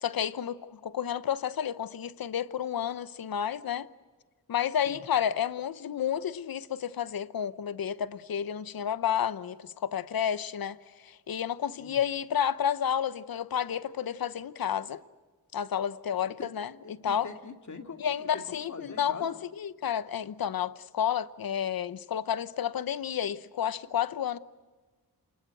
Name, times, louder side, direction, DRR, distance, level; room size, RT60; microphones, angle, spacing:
voice 1, 0.0-3.9 4.5-10.8 11.0-15.0 15.5-17.3 18.0-24.4, left 9 dB, 70° left, 0.9 m, -31 dB
voice 2, 16.8-19.3, left 4 dB, 50° left, 2.4 m, -43 dB
28.0 x 20.5 x 7.8 m
cardioid pair, 70°, 36 cm